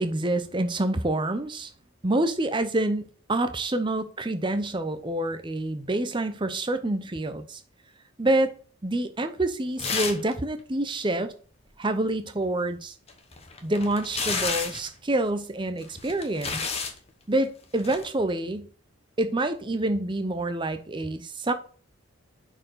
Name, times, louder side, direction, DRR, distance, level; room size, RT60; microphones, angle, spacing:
voice 1, 0.0-1.7 2.0-3.0 3.3-7.6 8.2-8.5 8.8-11.3 11.8-12.9 13.6-16.6 17.3-18.7 19.2-21.5, right 1 dB, 20° right, 0.6 m, -27 dB
sound 1, 9.8-10.3 10.6-10.7 13.1-14.9 15.8-17.0 17.8-18.0, left 5 dB, 30° left, 0.9 m, -30 dB
5.9 x 4.6 x 6.5 m
head